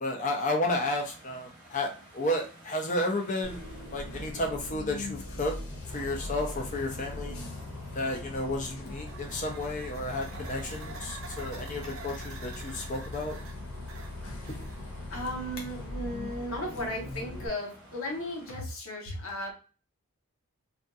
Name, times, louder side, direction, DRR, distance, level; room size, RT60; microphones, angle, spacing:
voice 1, 0.0-3.6 3.9-5.5 5.9-7.4 7.9-13.4, left 1 dB, 35° left, 2 dB, 0.5 m, -32 dB
sound 1, 0.6-18.6, right 1 dB, 20° right, 0.9 m, -52 dB
Bus, 3.4-17.5, left 2 dB, 85° left, 0.7 m, -40 dB
sound 2, 8.8-15.0, right 4 dB, 65° right, 0.5 m, -47 dB
voice 2, 15.1-19.5, left 1 dB, 65° left, 0 dB, 0.9 m, -36 dB
2.6 x 2.5 x 2.2 m, 0.36 s
head